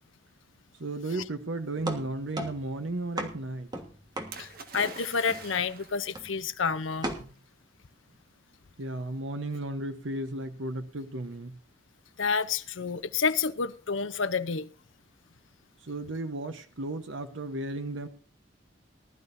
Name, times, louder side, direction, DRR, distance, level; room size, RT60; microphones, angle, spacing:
voice 1, 0.8-3.7 7.2-7.3 8.8-11.6 15.8-18.1, right 2 dB, 75° right, 1.0 m, -34 dB
sound 1, 1.8-4.9 5.3-5.7 6.1-6.5 7.0-7.2, right 1 dB, 20° right, 1.4 m, -37 dB
Splash splatter, 4.3-6.1 7.0-7.1, right 4 dB, 50° right, 1.4 m, -44 dB
voice 2, 4.4-7.1 12.2-14.7, left 5 dB, 80° left, 0.7 m, -29 dB
19.5 x 11.5 x 2.6 m
head